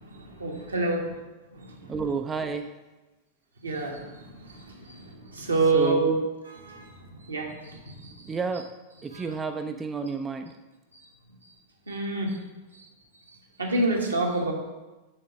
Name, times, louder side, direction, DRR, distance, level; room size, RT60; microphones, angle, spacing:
voice 1, 0.0-1.1 1.6-1.7 3.6-6.1 6.6-6.9 7.3-8.3 9.1-9.2 11.9-12.4 13.6-14.5, right 3 dB, 80° right, -1 dB, 1.3 m, -28 dB
voice 2, 1.8-2.7 5.7-6.1 8.2-8.7 9.0-10.5, right 5 dB, 20° right, 7 dB, 0.4 m, -30 dB
6.4 x 3.8 x 6.1 m, 1.1 s
figure-of-eight pair, 90°, 0 cm